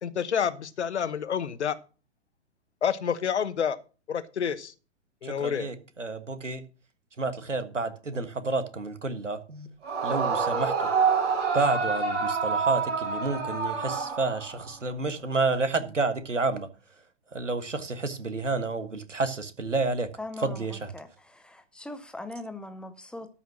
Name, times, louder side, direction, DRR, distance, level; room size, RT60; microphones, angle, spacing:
voice 1, 0.0-1.8 2.8-3.8 4.1-4.7 5.2-5.7, left 7 dB, 65° left, 1.2 m, -28 dB
voice 2, 5.2-6.6 7.2-9.7 10.0-10.9 11.5-16.7 17.3-20.1 20.4-20.9, right 3 dB, 85° right, 1.6 m, -30 dB
Yell / Screaming, 9.8-14.7, right 5 dB, 55° right, 6.5 m, -27 dB
voice 3, 20.2-20.6 20.9-21.1 21.3-23.3, left 2 dB, 5° left, 0.7 m, -40 dB
13.0 x 5.8 x 6.1 m
figure-of-eight pair, 115°, 36 cm